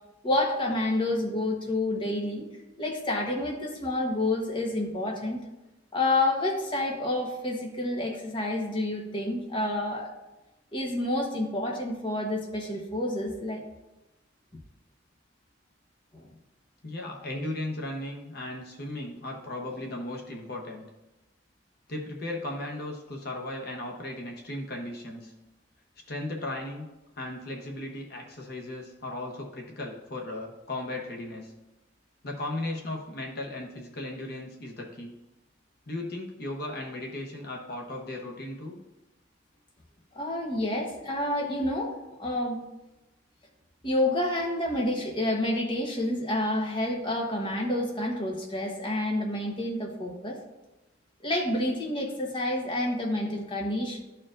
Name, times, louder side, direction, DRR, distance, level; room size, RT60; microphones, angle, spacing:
voice 1, 0.2-2.5 2.8-5.4 5.9-10.1 10.7-13.6 16.1-16.3 40.1-42.6 43.8-50.4 51.2-54.0, left 1 dB, 25° left, 0 dB, 1.0 m, -29 dB
voice 2, 16.8-20.9 21.9-25.3 26.1-26.8 27.2-31.5 32.2-35.1 35.9-38.8, left 1 dB, 55° left, 0 dB, 1.0 m, -36 dB
12.5 x 4.5 x 2.5 m, 0.99 s
head